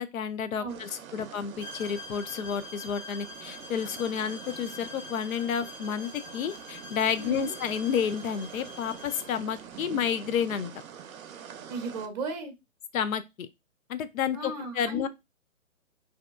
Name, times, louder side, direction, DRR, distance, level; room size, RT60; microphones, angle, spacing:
voice 1, 0.0-10.7 12.9-13.5 13.9-15.1, left 7 dB, 80° left, 0.5 m, -30 dB
sound 1, 0.7-12.1, right 8 dB, 80° right, 0.5 m, -46 dB
sound 2, 1.6-9.4, left 2 dB, 15° left, 0.5 m, -45 dB
voice 2, 7.2-7.5 11.7-12.5 14.3-15.1, right 2 dB, 30° right, 0.6 m, -35 dB
2.7 x 2.2 x 2.2 m
hypercardioid pair, 150°, 41 cm